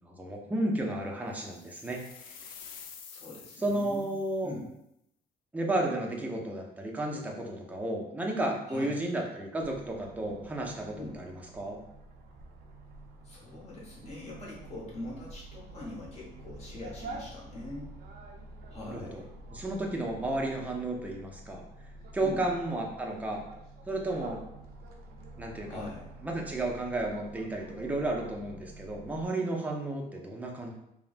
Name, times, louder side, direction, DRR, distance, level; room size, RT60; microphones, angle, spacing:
voice 1, 0.0-2.3 3.6-4.5 5.5-11.8 18.8-19.2 19.5-21.6 22.1-23.5 23.9-24.4 25.4-25.8 26.2-30.7, right 1 dB, 10° right, -1 dB, 0.5 m, -33 dB
sound 1, 1.5-4.5, left 7 dB, 60° left, 0.4 m, -49 dB
voice 2, 3.0-4.7 8.7-9.0 11.0-11.2 13.2-17.9 18.7-19.3 22.2-22.4 25.6-26.1, left 2 dB, 40° left, -5 dB, 1.1 m, -43 dB
sound 2, 9.6-29.3, right 2 dB, 70° right, 0.5 m, -48 dB
3.2 x 2.1 x 2.4 m, 0.81 s
cardioid pair, 110°, 17 cm